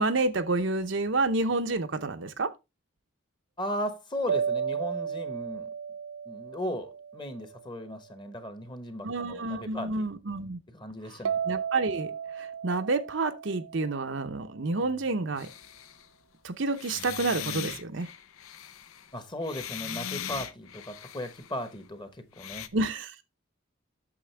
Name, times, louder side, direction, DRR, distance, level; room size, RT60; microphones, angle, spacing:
voice 1, 0.0-2.5 9.0-10.6 11.1-11.2 11.5-15.5 16.4-18.1 22.7-23.1, right 3 dB, 60° right, 0.7 m, -29 dB
voice 2, 3.6-5.7 6.3-10.1 10.7-11.4 19.1-22.7, left 1 dB, 20° left, 1.1 m, -37 dB
sound 1, 4.3-7.8 11.3-14.3, right 7 dB, 90° right, 0.4 m, -34 dB
sound 2, 15.4-16.1 16.7-21.7 22.4-22.7, left 9 dB, 85° left, 0.7 m, -40 dB
8.6 x 6.8 x 3.3 m
head